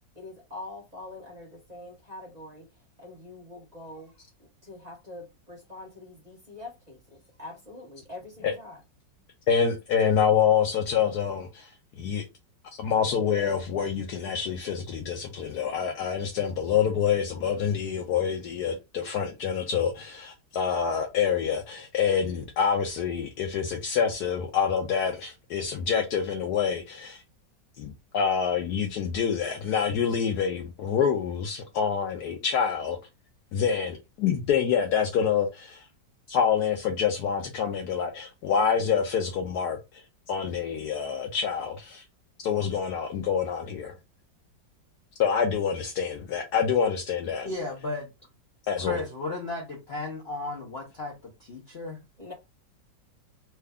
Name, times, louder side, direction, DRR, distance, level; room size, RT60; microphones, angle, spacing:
voice 1, 0.1-2.7 3.0-4.1 4.6-8.8 52.2-52.3, left 2 dB, 25° right, 1.1 m, -44 dB
voice 2, 9.5-11.7 12.0-12.3 12.8-27.2 27.8-33.0 33.5-35.8 36.3-39.8 40.3-42.0 42.4-43.9 45.2-47.5 48.7-49.0, left 7 dB, 70° left, 1.0 m, -26 dB
voice 3, 47.4-48.1 48.8-52.0, left 3 dB, 50° left, 0.8 m, -34 dB
3.2 x 2.3 x 3.4 m
omnidirectional pair, 2.0 m